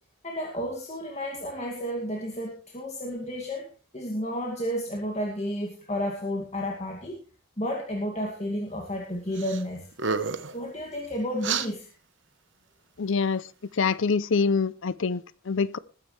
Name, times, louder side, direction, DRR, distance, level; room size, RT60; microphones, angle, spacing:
voice 1, 0.2-3.7 3.9-7.2 7.6-9.9 10.5-11.9, equal, 30° left, 2.3 m, -32 dB
sound 1, 9.4-9.6 9.9-10.6 11.4-11.7, right 5 dB, 55° right, 1.1 m, -29 dB
voice 2, 13.0-13.4 13.8-15.2 15.5-15.8, left 5 dB, 60° left, 0.5 m, -25 dB
20.5 x 9.9 x 3.3 m
head